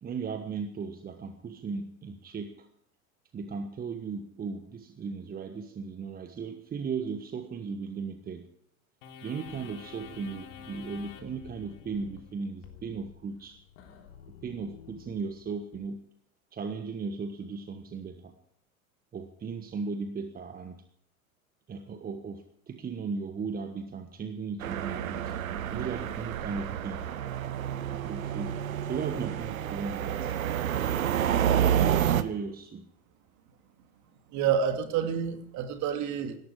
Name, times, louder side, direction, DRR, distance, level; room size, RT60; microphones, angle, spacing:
voice 1, 0.0-2.7 3.3-8.5 9.2-13.6 14.4-16.0 16.5-18.3 19.1-20.8 21.7-25.4 25.7-27.0 28.0-28.6 28.9-30.3 31.8-32.9, right 5 dB, 20° right, 8 dB, 1.3 m, -36 dB
sound 1, 9.0-15.8, left 9 dB, 55° left, 3.6 m, -49 dB
sound 2, 24.6-32.2, right 10 dB, 70° right, 1.2 m, -29 dB
voice 2, 34.3-36.4, right 8 dB, 40° right, 7 dB, 2.7 m, -28 dB
18.0 x 14.0 x 4.9 m, 0.68 s
figure-of-eight pair, 85°, 43 cm